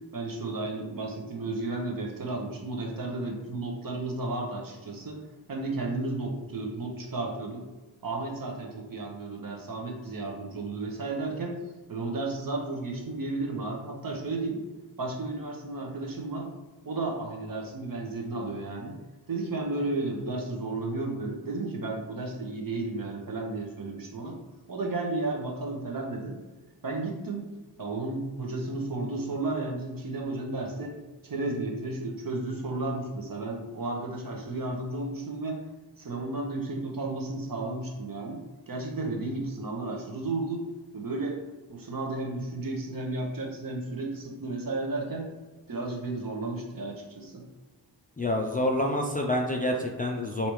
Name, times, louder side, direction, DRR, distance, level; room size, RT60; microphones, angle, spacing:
voice 1, 0.1-5.2 5.5-7.6 8.0-14.6 15.0-16.5 16.8-18.9 19.3-24.4 24.7-26.4 26.8-27.4 27.8-30.9 31.2-35.6 36.0-38.4 38.7-40.6 40.9-41.4 41.7-45.3 45.7-47.4, right 2 dB, 50° right, 0 dB, 0.8 m, -33 dB
voice 2, 48.2-50.5, left 1 dB, 20° left, 0 dB, 0.3 m, -27 dB
3.2 x 2.7 x 3.0 m, 1.2 s
cardioid pair, 60°, 44 cm